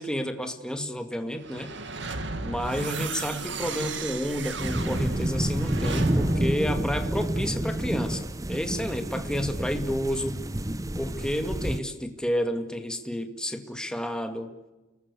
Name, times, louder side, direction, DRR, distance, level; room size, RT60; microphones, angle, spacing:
voice 1, 0.0-1.7 2.4-10.4 11.0-14.5, equal, 5° left, 6 dB, 2.2 m, -30 dB
sound 1, 1.4-7.6, right 3 dB, 65° right, 2.2 m, -35 dB
sound 2, 4.6-11.8, right 1 dB, 15° right, 0.8 m, -29 dB
30.0 x 20.0 x 8.4 m, 1.1 s
head